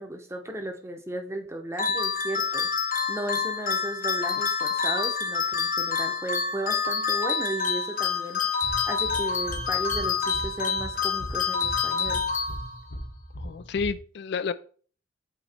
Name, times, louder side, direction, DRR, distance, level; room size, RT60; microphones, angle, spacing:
voice 1, 0.0-2.7 3.1-8.4 8.9-12.2, right 1 dB, 15° right, 0.8 m, -35 dB
sound 1, 1.8-13.0, left 5 dB, 45° left, 0.8 m, -27 dB
sound 2, 8.6-14.0, equal, 85° left, 1.7 m, -39 dB
voice 2, 13.4-14.5, left 5 dB, 60° left, 0.3 m, -30 dB
7.9 x 3.1 x 4.3 m
head